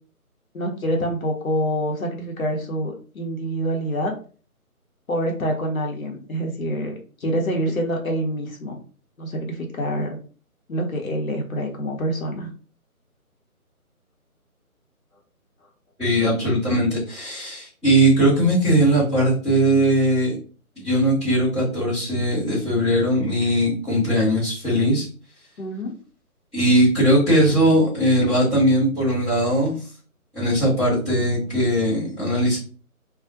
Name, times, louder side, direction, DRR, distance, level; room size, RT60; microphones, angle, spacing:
voice 1, 0.5-4.1 5.1-8.8 9.2-10.1 10.7-12.5 25.6-25.9, equal, 65° left, 2 dB, 0.8 m, -26 dB
voice 2, 16.0-20.4 20.8-25.1 26.5-29.7 30.3-32.6, right 1 dB, 5° left, -14 dB, 0.8 m, -19 dB
2.3 x 2.1 x 2.6 m, 0.39 s
figure-of-eight pair, 155°, 44 cm